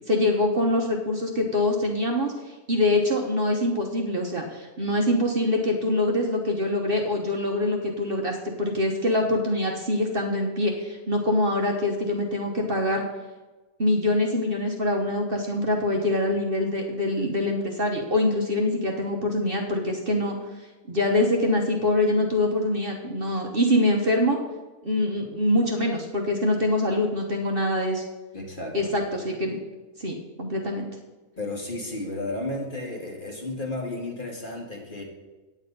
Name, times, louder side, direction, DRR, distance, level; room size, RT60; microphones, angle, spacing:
voice 1, 0.1-13.0 13.8-20.4 20.9-24.4 24.8-28.0 28.7-29.6 30.0-30.9, left 1 dB, 40° right, 1 dB, 1.2 m, -24 dB
voice 2, 28.3-28.9 31.4-35.0, left 2 dB, 35° left, 1 dB, 1.7 m, -33 dB
9.0 x 8.7 x 5.3 m, 1.2 s
omnidirectional pair, 1.6 m